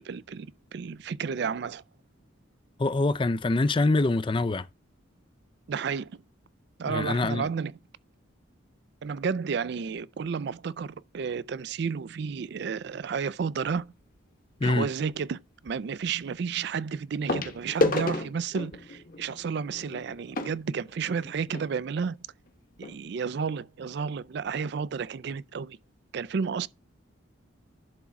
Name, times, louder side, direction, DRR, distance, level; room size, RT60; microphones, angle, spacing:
voice 1, 0.0-1.8 5.7-6.2 6.8-7.8 9.0-13.9 14.6-15.4 15.6-22.2 22.8-25.8 26.1-26.7, right 6 dB, 55° right, 0.4 m, -32 dB
voice 2, 2.8-4.7 6.9-7.5 14.6-14.9, left 2 dB, 25° left, 0.4 m, -25 dB
sound 1, 13.7-14.0 15.7-15.8 17.3-21.7 22.5-22.6 22.8-23.0 23.5-23.6, left 2 dB, 45° left, 1.1 m, -32 dB
11.0 x 3.7 x 5.8 m
head